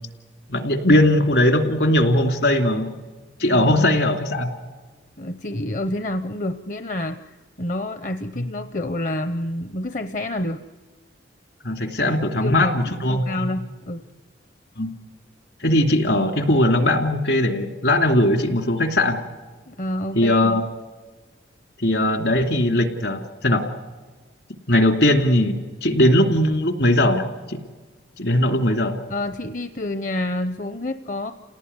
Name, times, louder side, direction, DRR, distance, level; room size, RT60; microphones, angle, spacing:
voice 1, 0.5-2.9 3.4-4.5 8.4-8.5 11.6-13.4 14.8-14.9 15.6-19.2 20.1-20.6 21.8-23.7 24.7-27.6 28.2-28.9, left 1 dB, 70° left, 5 dB, 2.8 m, -19 dB
voice 2, 3.5-3.9 5.2-7.2 7.6-10.6 12.3-14.0 19.7-20.6 29.1-31.3, left 1 dB, 40° left, 9 dB, 0.8 m, -28 dB
29.0 x 18.5 x 9.7 m, 1.4 s
head